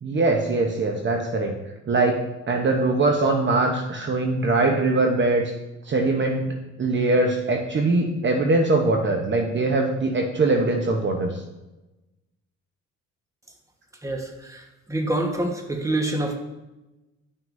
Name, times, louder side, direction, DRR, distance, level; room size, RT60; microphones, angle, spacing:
voice 1, 0.0-1.5 1.9-2.2 2.5-5.5 5.8-6.5 6.8-11.4, right 2 dB, 40° right, 3 dB, 0.8 m, -22 dB
voice 2, 14.0-16.4, right 1 dB, 10° right, 3 dB, 1.2 m, -27 dB
11.0 x 6.1 x 2.6 m, 1.0 s
cardioid pair, 90°, 30 cm